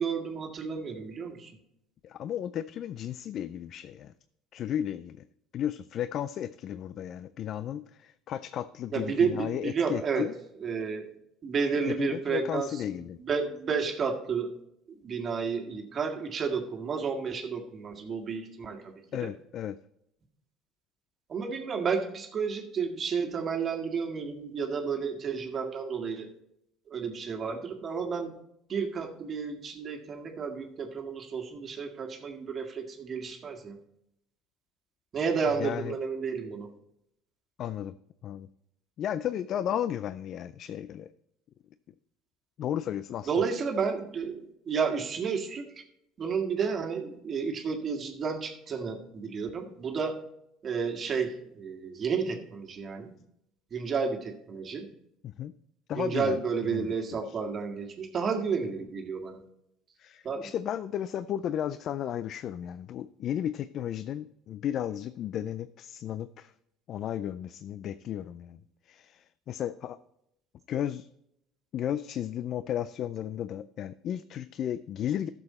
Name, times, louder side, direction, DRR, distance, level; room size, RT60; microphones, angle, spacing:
voice 1, 0.0-1.6 8.9-10.3 10.6-11.1 11.4-12.8 13.2-14.5 15.0-18.9 19.2-19.3 21.3-26.3 26.9-28.4 28.7-33.8 35.1-36.7 43.3-45.8 46.2-50.2 50.6-53.1 53.7-54.9 55.9-59.4 60.2-60.5, right 5 dB, 40° right, 4 dB, 1.7 m, -31 dB
voice 2, 2.0-4.1 4.5-5.2 5.5-10.3 11.9-13.2 19.1-19.8 35.6-36.0 37.6-37.9 38.2-38.5 39.0-41.1 42.6-43.3 55.2-55.5 55.9-56.4 56.6-57.4 60.0-66.5 66.9-70.0 70.7-71.1 71.7-75.3, left 10 dB, 55° left, 15 dB, 0.4 m, -34 dB
12.0 x 6.9 x 4.2 m, 0.79 s
supercardioid pair, 85°, 0 cm